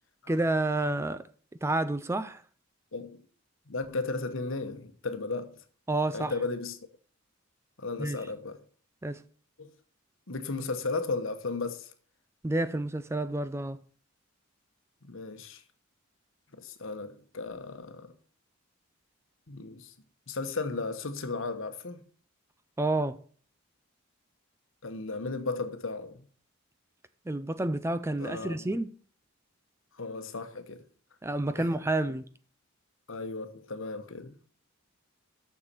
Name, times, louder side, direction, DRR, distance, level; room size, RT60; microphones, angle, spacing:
voice 1, 0.3-1.2 1.6-2.4 5.9-6.3 8.0-8.2 9.0-9.2 12.4-13.8 22.8-23.2 27.3-28.9 31.2-32.2, right 2 dB, 10° right, 0.4 m, -29 dB
voice 2, 2.9-3.2 3.7-5.6 6.1-6.9 7.8-8.6 9.6-9.7 10.3-11.9 15.0-15.6 16.5-18.1 19.5-19.9 20.3-22.0 24.8-26.3 28.2-28.7 29.9-30.8 31.6-31.7 33.1-34.4, left 3 dB, 65° left, 1.1 m, -35 dB
7.1 x 6.6 x 6.7 m
head